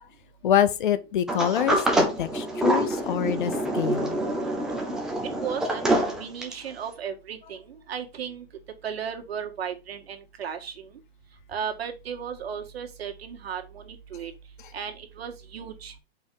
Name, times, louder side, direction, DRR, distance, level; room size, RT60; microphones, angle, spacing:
voice 1, 0.4-4.2, left 10 dB, 50° left, 0.8 m, -26 dB
Sliding door, 1.3-6.7, right 1 dB, ahead, 0.6 m, -26 dB
voice 2, 5.2-8.5 8.8-10.9 11.5-14.3 14.7-15.9, right 7 dB, 75° right, 1.9 m, -35 dB
5.4 x 4.5 x 5.3 m
hypercardioid pair, 170°, 31 cm